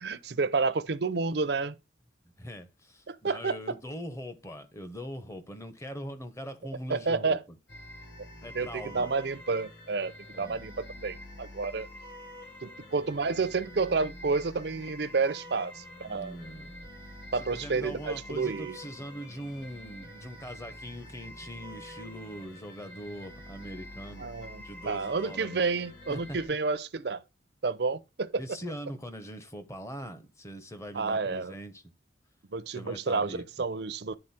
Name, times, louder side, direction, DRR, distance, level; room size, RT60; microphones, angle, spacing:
voice 1, 0.0-1.8 3.1-3.7 6.9-7.4 8.5-11.9 12.6-16.4 17.3-18.8 24.2-27.2 27.6-28.4 30.9-31.5 32.5-34.2, right 4 dB, 60° right, 0.6 m, -30 dB
voice 2, 2.4-7.6 8.4-9.1 10.3-10.6 16.1-16.7 17.3-24.2 24.6-25.6 26.1-26.2 28.4-31.8 32.7-33.4, equal, 15° left, 1.0 m, -41 dB
sound 1, 7.7-26.5, left 1 dB, 50° left, 4.3 m, -47 dB
10.0 x 4.1 x 4.3 m
head